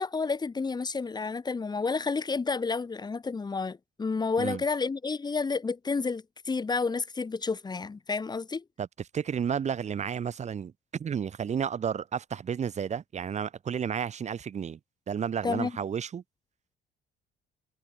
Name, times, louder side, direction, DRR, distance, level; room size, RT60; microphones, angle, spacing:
voice 1, 0.0-8.6 15.4-15.7, left 4 dB, 25° left, 4.4 m, -30 dB
voice 2, 9.1-14.8 15.1-16.2, right 7 dB, 40° right, 5.8 m, -32 dB
cardioid pair, 110°, 17 cm